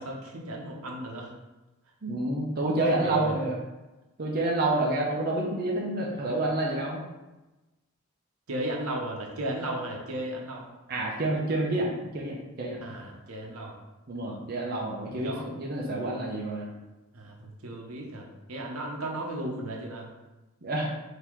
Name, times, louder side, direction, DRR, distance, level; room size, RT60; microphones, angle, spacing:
voice 1, 0.0-1.3 2.7-3.3 8.5-10.7 12.8-13.8 15.1-15.4 17.1-20.1, right 1 dB, 80° right, 0 dB, 0.9 m, -35 dB
voice 2, 2.0-3.6 4.2-7.0 10.9-12.9 14.1-16.7 20.6-20.9, right 2 dB, 45° right, -3 dB, 0.7 m, -28 dB
3.8 x 2.9 x 4.6 m, 1.1 s
head